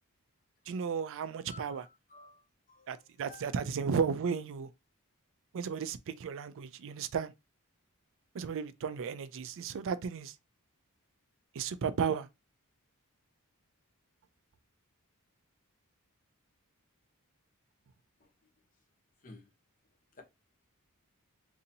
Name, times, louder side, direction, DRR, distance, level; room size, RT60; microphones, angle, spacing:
voice 1, 0.7-1.9 2.9-4.7 5.5-7.3 8.3-10.3 11.5-12.3, right 6 dB, 60° right, 0.4 m, -34 dB
voice 2, 1.5-2.4 2.7-3.0 3.3-3.4 19.2-19.4, left 3 dB, 40° left, 0.9 m, -53 dB
3.9 x 2.7 x 2.7 m
head